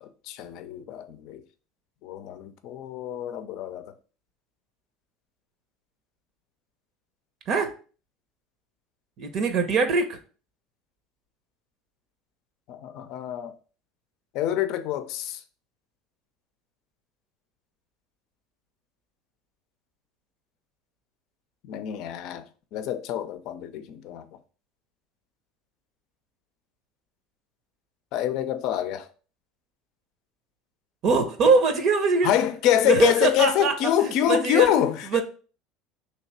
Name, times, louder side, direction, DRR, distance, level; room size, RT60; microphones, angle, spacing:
voice 1, 0.0-1.4 2.0-3.9 12.7-13.5 14.3-15.4 21.6-24.3 28.1-29.1 32.2-35.1, left 11 dB, 65° left, 0.5 m, -26 dB
voice 2, 9.2-10.2 31.0-32.3 32.8-33.7 34.0-34.7 35.1-35.2, right 4 dB, 55° right, 0.8 m, -22 dB
3.0 x 2.9 x 4.4 m
hypercardioid pair, 90°, 0 cm